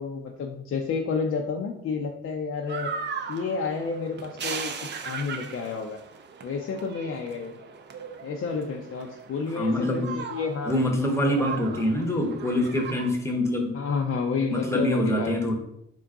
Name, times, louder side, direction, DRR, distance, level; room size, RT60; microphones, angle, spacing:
voice 1, 0.0-2.9 3.3-4.7 5.0-6.0 6.4-7.6 8.2-10.8 11.3-11.5 13.7-15.3, left 5 dB, 50° left, 1 dB, 0.5 m, -30 dB
sound 1, 2.7-13.1, right 6 dB, 35° right, 0.4 m, -38 dB
voice 2, 9.5-10.2 10.6-13.8 14.5-15.5, left 1 dB, 10° left, 1 dB, 0.8 m, -25 dB
3.7 x 2.3 x 3.7 m, 0.76 s
cardioid pair, 90°, 30 cm